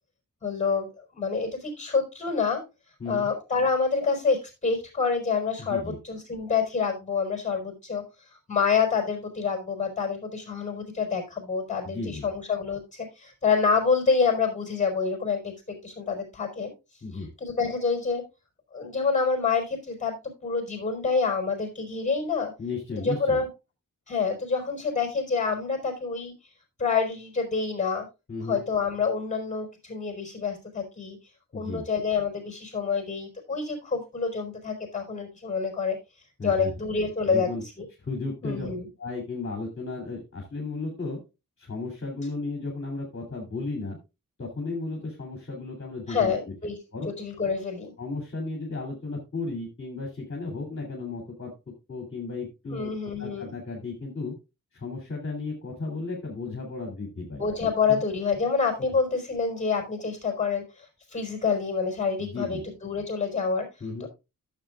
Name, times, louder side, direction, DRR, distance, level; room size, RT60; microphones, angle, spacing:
voice 1, 0.4-2.6 3.1-8.0 8.5-16.7 17.4-18.2 18.7-22.5 22.9-23.5 24.1-26.3 26.8-28.1 28.4-31.2 31.5-36.0 36.4-37.5 37.8-37.9 38.4-38.8 46.1-46.8 47.0-47.9 52.7-53.5 57.4-63.7, left 5 dB, 20° left, 2 dB, 4.8 m, -27 dB
voice 2, 5.7-6.0 11.8-12.3 17.0-17.3 22.6-23.4 28.3-28.6 31.5-31.8 36.4-36.7 37.3-37.6 38.0-38.7 39.0-41.2 41.6-44.0 44.4-46.5 46.9-47.1 48.0-51.5 51.9-52.9 53.2-54.3 54.7-57.4 57.9-58.0 58.9-59.0 62.2-62.6 63.8-64.1, left 3 dB, 35° left, 0 dB, 3.0 m, -34 dB
14.0 x 7.7 x 2.4 m, 0.26 s
wide cardioid pair, 160°, 33 cm